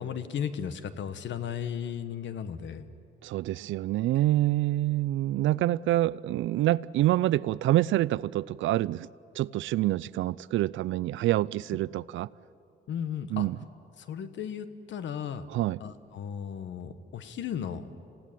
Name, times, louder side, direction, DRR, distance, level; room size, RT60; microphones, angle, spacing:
voice 1, 0.0-2.9 12.9-13.5 14.0-15.5 15.8-17.8, left 8 dB, 70° left, 1.4 m, -35 dB
voice 2, 3.2-9.1 9.4-12.3 13.3-13.6 15.5-15.8, right 15 dB, 80° right, 0.5 m, -26 dB
28.0 x 16.5 x 9.2 m
cardioid pair, 90°, 20 cm